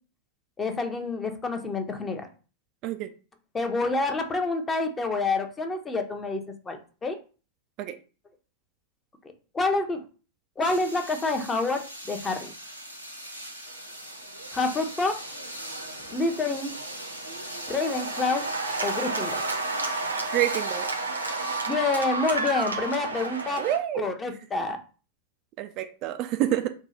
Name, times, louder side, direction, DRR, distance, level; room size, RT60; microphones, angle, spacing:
voice 1, 0.6-2.3 3.5-7.2 9.5-10.0 10.6-12.5 14.5-15.2 16.1-16.7 17.7-18.5 18.8-19.4 21.7-23.7 23.9-24.8, left 3 dB, 15° left, 0.8 m, -28 dB
sound 1, 10.6-21.6, equal, 90° left, 0.9 m, -40 dB
Cheering / Applause, 14.1-23.8, right 3 dB, 80° right, 0.7 m, -32 dB
voice 2, 20.3-20.9 23.6-24.1 25.6-26.7, right 12 dB, 40° right, 0.3 m, -28 dB
4.5 x 2.3 x 4.2 m
figure-of-eight pair, 90°, 0 cm